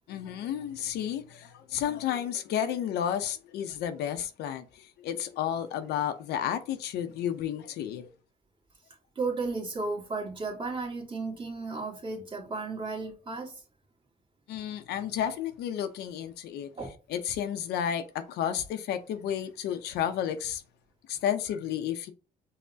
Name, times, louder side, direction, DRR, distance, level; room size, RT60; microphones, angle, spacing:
voice 1, 0.1-8.1 14.5-16.7 17.1-20.6 21.1-22.1, left 9 dB, 75° left, 0.5 m, -32 dB
voice 2, 9.1-13.5 16.8-16.9, right 3 dB, 30° right, 1.4 m, -34 dB
5.4 x 2.1 x 2.6 m
cardioid pair, 110°, 17 cm